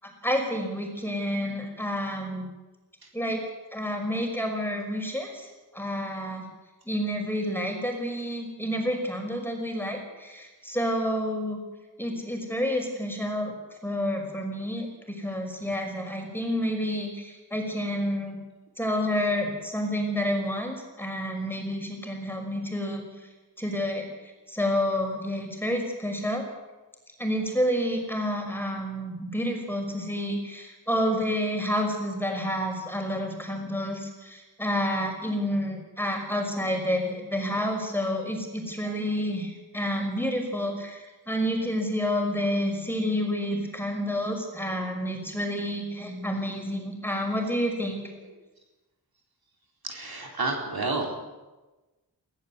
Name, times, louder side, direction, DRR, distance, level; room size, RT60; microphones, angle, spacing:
voice 1, 0.0-2.5 3.1-3.4 3.7-6.4 6.9-11.6 12.0-13.5 13.8-18.4 18.8-23.3 23.6-24.1 24.5-26.4 27.2-48.3, equal, 5° left, 3 dB, 5.7 m, -29 dB
voice 2, 49.8-51.2, right 3 dB, 60° right, 1 dB, 4.2 m, -30 dB
21.0 x 16.5 x 8.3 m, 1.2 s
wide cardioid pair, 75°, 41 cm